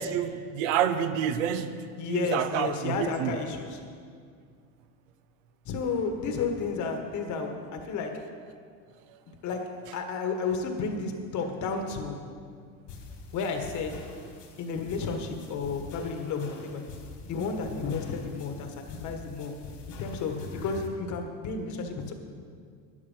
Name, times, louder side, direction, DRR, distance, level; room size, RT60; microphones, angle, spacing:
voice 1, 0.0-3.3, right 9 dB, 85° right, 10 dB, 0.9 m, -28 dB
voice 2, 2.0-3.8 5.6-8.4 9.3-12.2 13.3-14.1 14.6-16.9 17.2-19.6 19.9-22.1, left 4 dB, 50° left, 5 dB, 1.6 m, -32 dB
sound 1, 12.9-20.9, left 3 dB, 75° left, 2.8 m, -45 dB
11.0 x 10.5 x 5.7 m, 2.1 s
supercardioid pair, 130°, 38 cm